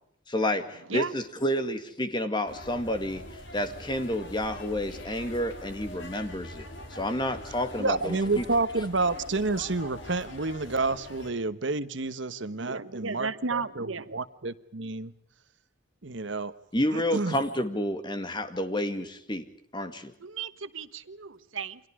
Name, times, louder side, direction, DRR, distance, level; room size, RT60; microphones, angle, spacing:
voice 1, 0.3-3.2 3.5-8.5 16.7-19.4 19.7-20.1, left 1 dB, 25° left, 2.0 m, -30 dB
sound 1, 2.5-11.3, left 1 dB, 65° left, 3.5 m, -43 dB
voice 2, 7.8-15.1 16.0-16.5 16.9-17.4, right 3 dB, 65° right, 1.2 m, -29 dB
voice 3, 12.5-14.1 20.2-21.8, right 4 dB, 90° right, 1.3 m, -34 dB
30.0 x 25.0 x 5.0 m
head